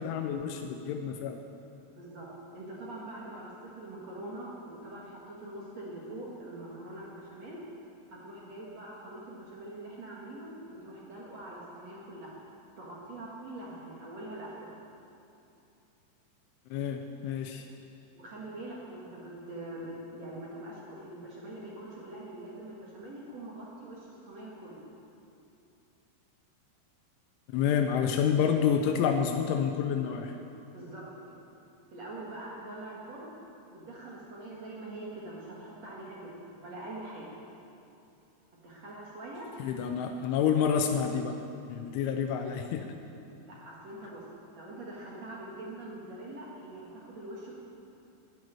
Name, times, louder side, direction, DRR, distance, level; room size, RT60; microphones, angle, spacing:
voice 1, 0.0-1.4 16.7-17.7 27.5-30.4 39.6-41.4 41.7-42.9, left 7 dB, 80° left, 5 dB, 3.1 m, -28 dB
voice 2, 1.9-2.3 2.5-7.6 8.1-12.3 12.8-14.7 18.1-24.8 30.7-31.0 31.9-33.3 33.7-37.3 38.5-39.5 43.4-44.2 44.5-47.5, right 1 dB, 55° right, -5 dB, 2.0 m, -43 dB
10.5 x 9.5 x 9.9 m, 2.7 s
omnidirectional pair, 5.5 m